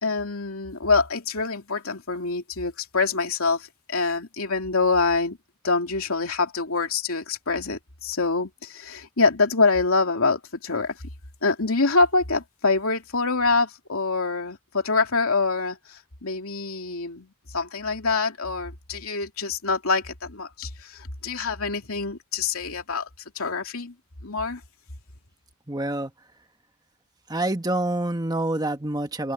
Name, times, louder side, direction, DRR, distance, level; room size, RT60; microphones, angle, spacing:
voice 1, 0.0-5.4 5.6-11.0 11.4-23.1 23.3-23.9 24.2-24.6, left 4 dB, 80° left, 2.7 m, -25 dB
voice 2, 25.7-26.1 27.3-29.3, right 1 dB, 20° right, 1.5 m, -27 dB
open air
head